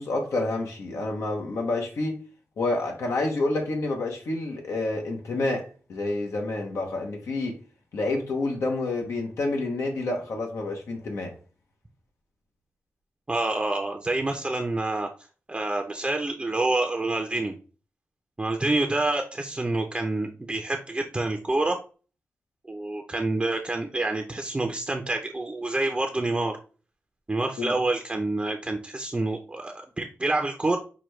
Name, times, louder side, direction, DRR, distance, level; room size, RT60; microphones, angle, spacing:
voice 1, 0.0-2.2 2.6-7.6 7.9-11.3 27.6-27.8, left 2 dB, 80° left, 0.9 m, -28 dB
voice 2, 13.3-15.1 15.5-17.6 18.4-21.8 22.6-26.6 27.3-30.8, right 2 dB, 20° right, 0.6 m, -27 dB
6.0 x 2.3 x 3.1 m
cardioid pair, 75°, 5 cm